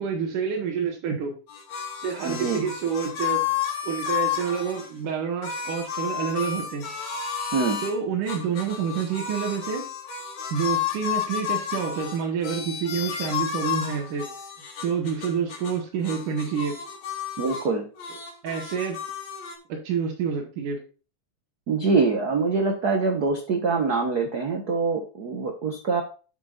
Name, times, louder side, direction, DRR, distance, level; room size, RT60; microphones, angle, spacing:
voice 1, 0.0-1.4 2.0-3.5 3.8-6.9 7.8-9.9 10.5-14.3 14.8-16.8 18.4-19.0 19.7-20.8, right 6 dB, 80° right, 0 dB, 3.2 m, -28 dB
sound 1, 1.5-4.9 5.4-8.0 8.3-15.8 16.0-17.7 18.0-19.6, left 9 dB, 60° left, 3.3 m, -32 dB
voice 2, 2.2-2.6 7.5-7.8 17.4-17.9 21.7-26.0, right 4 dB, 55° right, 3 dB, 1.1 m, -24 dB
10.5 x 7.3 x 2.5 m, 0.35 s
omnidirectional pair, 3.6 m